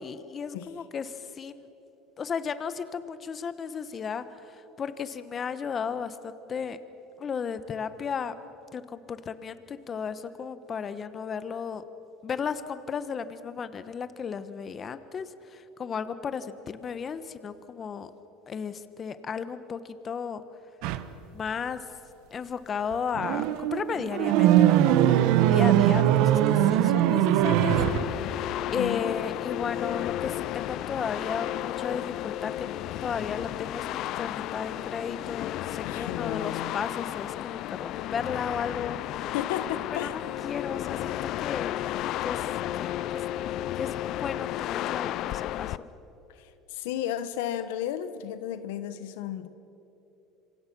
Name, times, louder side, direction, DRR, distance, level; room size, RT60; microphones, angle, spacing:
voice 1, 0.0-1.7 2.2-6.8 7.2-8.3 8.7-11.8 12.2-18.1 18.5-20.4 21.3-21.8 22.3-28.3 28.7-32.5 33.0-33.9 34.2-39.3 40.0-41.7 42.2-42.5 42.8-43.2 43.8-45.9, left 6 dB, 35° left, 12 dB, 1.3 m, -34 dB
mirror wet hand squeak squeal creak, 20.8-21.0 22.9-28.1, right 12 dB, 70° right, 1.1 m, -21 dB
sound 1, 27.7-45.8, left 13 dB, 60° left, 0.6 m, -33 dB
voice 2, 28.8-29.1 35.8-36.7 39.3-40.1 46.3-49.5, left 11 dB, 85° left, 12 dB, 1.0 m, -33 dB
27.0 x 24.5 x 6.2 m, 3.0 s
supercardioid pair, 105°, 0 cm